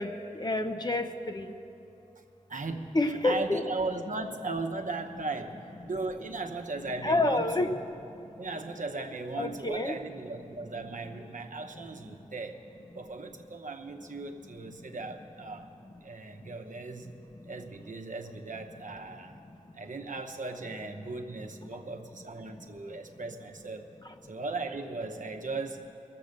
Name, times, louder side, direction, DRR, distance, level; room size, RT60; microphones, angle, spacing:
voice 1, 0.0-1.5 2.9-3.6 7.0-7.7 9.4-10.0, left 2 dB, 30° left, 6 dB, 0.6 m, -28 dB
voice 2, 2.5-2.9 3.2-7.8 8.4-12.6 12.9-15.7 16.0-17.1 17.4-19.4 19.7-23.9 24.2-25.8, right 3 dB, 75° right, 3 dB, 0.9 m, -37 dB
21.0 x 7.7 x 6.4 m, 2.8 s
wide cardioid pair, 55°, 13 cm